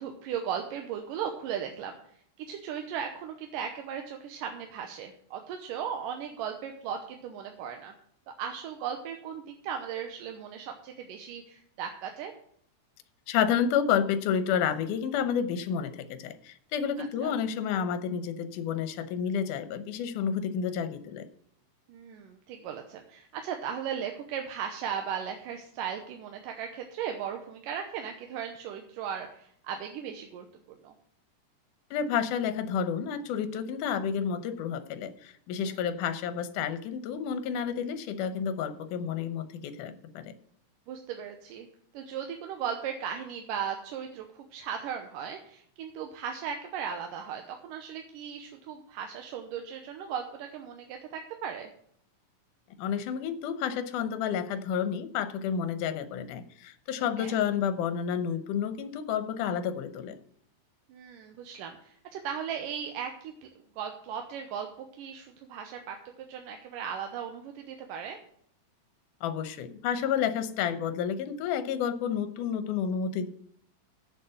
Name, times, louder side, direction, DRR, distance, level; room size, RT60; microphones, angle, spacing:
voice 1, 0.0-1.9 2.4-7.9 8.3-12.3 17.0-17.3 21.9-30.9 35.6-35.8 40.9-41.7 41.9-51.7 57.2-57.4 60.9-63.5 63.8-68.2, right 8 dB, 80° right, 4 dB, 2.4 m, -37 dB
voice 2, 13.3-21.3 31.9-40.3 52.8-60.2 69.2-73.3, left 8 dB, 70° left, 11 dB, 2.2 m, -30 dB
8.3 x 7.2 x 7.7 m, 0.64 s
omnidirectional pair, 4.0 m